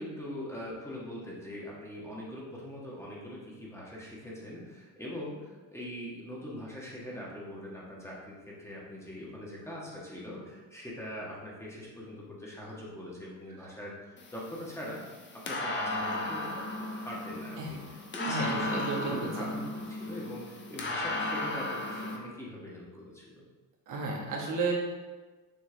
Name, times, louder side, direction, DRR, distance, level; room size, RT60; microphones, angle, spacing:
voice 1, 0.0-15.0 15.4-19.6 19.9-23.4, equal, 5° left, -5 dB, 1.4 m, -42 dB
sound 1, 14.2-22.2, left 2 dB, 30° left, 0.9 m, -35 dB
voice 2, 18.3-19.3 23.9-24.7, right 3 dB, 50° right, -2 dB, 1.4 m, -32 dB
6.7 x 4.4 x 3.3 m, 1.3 s
cardioid pair, 115°, 39 cm